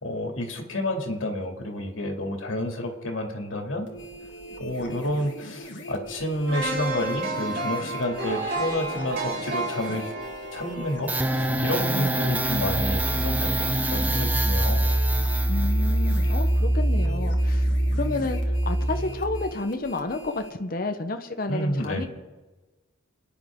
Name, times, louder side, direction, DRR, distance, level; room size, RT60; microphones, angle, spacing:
voice 1, 0.0-3.9 4.6-10.1 10.5-14.9 21.5-22.1, left 1 dB, 85° left, 2 dB, 2.4 m, -30 dB
sound 1, 3.9-20.5, equal, 65° left, 2.1 m, -42 dB
sound 2, 6.5-12.5 12.9-13.0, right 2 dB, 50° right, 4.2 m, -32 dB
sound 3, 11.1-19.5, right 1 dB, 10° right, 0.6 m, -24 dB
voice 2, 15.5-17.7 17.9-22.1, left 2 dB, 45° left, 6 dB, 0.8 m, -31 dB
27.5 x 10.0 x 3.6 m, 1.2 s
head